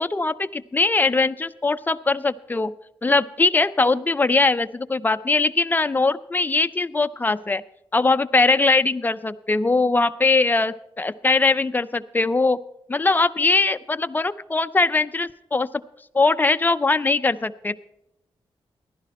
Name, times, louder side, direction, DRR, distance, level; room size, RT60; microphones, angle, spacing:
voice 1, 0.0-2.7 3.0-7.6 7.9-12.6 12.9-15.7 16.1-17.8, left 3 dB, 20° left, 11 dB, 0.5 m, -21 dB
15.5 x 11.5 x 4.2 m, 0.81 s
wide cardioid pair, 110°, 10 cm